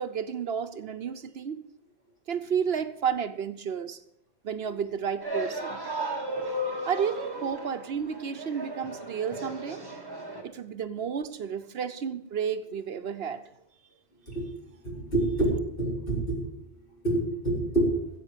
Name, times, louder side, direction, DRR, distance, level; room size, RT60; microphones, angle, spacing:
voice 1, 0.0-1.6 2.3-4.0 4.4-5.8 6.8-9.8 10.4-13.5, right 7 dB, 65° right, 11 dB, 1.0 m, -31 dB
sound 1, 5.2-10.4, right 1 dB, 20° right, 1.8 m, -35 dB
voice 2, 14.8-16.4 17.0-17.9, right 2 dB, 50° left, -3 dB, 4.7 m, -26 dB
15.0 x 7.9 x 7.3 m, 0.76 s
omnidirectional pair, 1.1 m